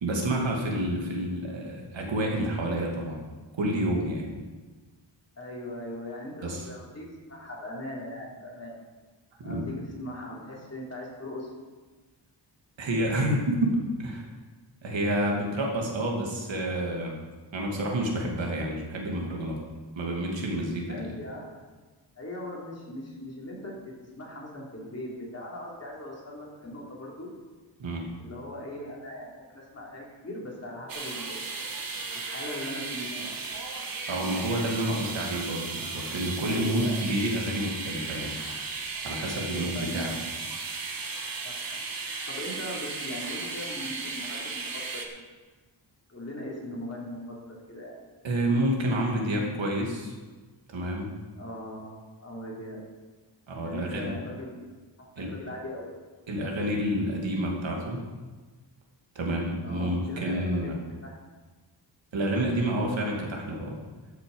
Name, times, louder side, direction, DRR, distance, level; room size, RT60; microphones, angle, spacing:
voice 1, 0.0-3.2 3.6-4.3 6.4-6.6 9.4-9.7 12.8-14.3 14.8-17.1 17.5-19.6 20.0-21.0 27.8-28.0 34.1-38.3 39.0-40.1 48.2-50.1 50.7-51.1 53.5-54.1 55.2-55.3 56.3-58.0 59.1-60.8 62.1-63.8, right 1 dB, 80° right, -1 dB, 2.5 m, -29 dB
voice 2, 5.4-8.8 9.4-11.5 20.8-21.6 22.2-27.3 28.2-31.8 32.1-33.3 36.4-37.0 39.3-40.2 41.4-41.8 42.3-45.2 46.1-48.0 51.3-52.8 53.6-54.8 55.3-55.9 59.6-61.2, left 1 dB, 35° left, -4 dB, 3.3 m, -39 dB
sound 1, 30.9-45.1, right 4 dB, 50° right, 1.4 m, -35 dB
13.0 x 6.8 x 5.4 m, 1.3 s
wide cardioid pair, 125°, 45 cm